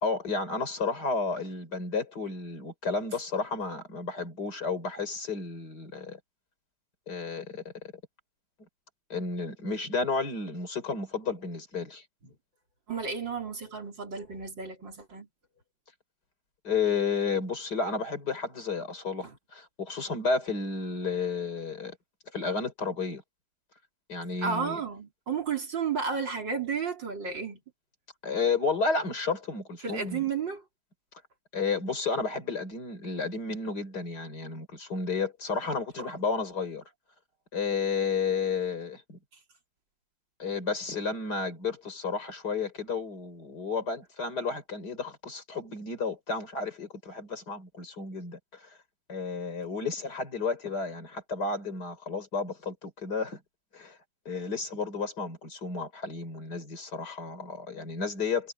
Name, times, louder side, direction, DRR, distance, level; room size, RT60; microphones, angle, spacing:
voice 1, 0.0-6.2 7.1-7.6 9.1-12.0 16.6-22.0 22.3-23.2 24.1-24.8 28.2-30.2 31.5-36.8 37.5-39.2 40.4-48.8 49.1-53.4 53.7-54.0 54.3-58.5, left 4 dB, 50° left, 4.3 m, -32 dB
voice 2, 12.9-15.3 19.2-19.4 24.4-27.6 29.8-30.6 36.0-36.1, right 6 dB, 60° right, 4.2 m, -32 dB
omnidirectional pair, 2.2 m